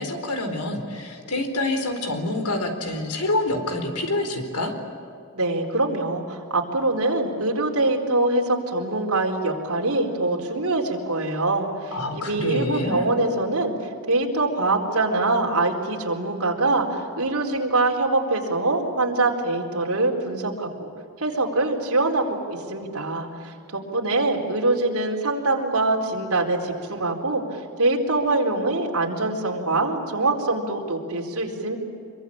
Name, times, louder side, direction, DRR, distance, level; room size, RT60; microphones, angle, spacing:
voice 1, 0.0-4.7 11.9-13.1, left 2 dB, 90° left, 6 dB, 4.3 m, -27 dB
voice 2, 5.3-13.7 14.1-20.9 21.2-31.8, right 2 dB, 70° right, 1 dB, 4.3 m, -24 dB
26.0 x 23.5 x 8.9 m, 2.5 s
head